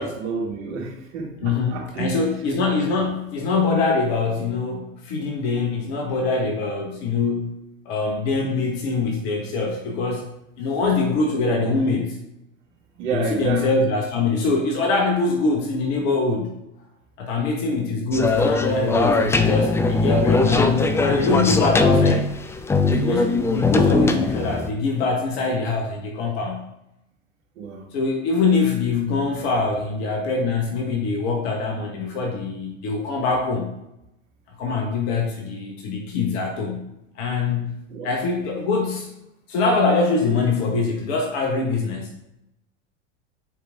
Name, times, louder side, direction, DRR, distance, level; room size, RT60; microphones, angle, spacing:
voice 1, 0.0-2.2 13.0-13.7 27.6-27.9 37.9-38.1, right 5 dB, 60° right, -1 dB, 2.4 m, -29 dB
voice 2, 1.4-7.5 7.8-10.3 10.6-12.2 13.1-16.5 17.2-22.3 22.9-26.6 27.9-33.7 34.6-36.9 37.1-39.1 39.5-42.2, left 3 dB, 55° left, 2 dB, 1.5 m, -23 dB
sound 1, 18.1-24.7, left 3 dB, 5° left, 0.4 m, -20 dB
9.1 x 5.0 x 3.7 m, 0.86 s
figure-of-eight pair, 85°, 39 cm